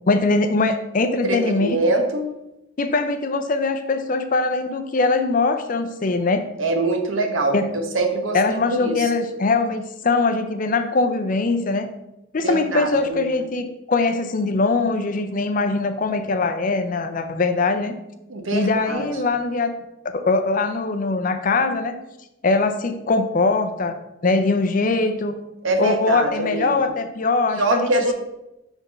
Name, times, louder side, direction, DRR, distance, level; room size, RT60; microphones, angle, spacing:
voice 1, 0.0-1.8 2.8-6.5 7.5-7.7 8.3-11.9 12.3-17.9 18.5-19.8 20.1-22.0 22.4-24.0 24.2-25.4 25.8-28.1, left 3 dB, 40° left, 8 dB, 0.5 m, -22 dB
voice 2, 1.2-2.3 6.6-8.4 8.7-9.1 12.4-13.3 18.3-19.1 25.6-26.8 27.5-28.1, right 2 dB, 70° right, 5 dB, 0.9 m, -23 dB
5.7 x 3.5 x 5.3 m, 0.91 s
head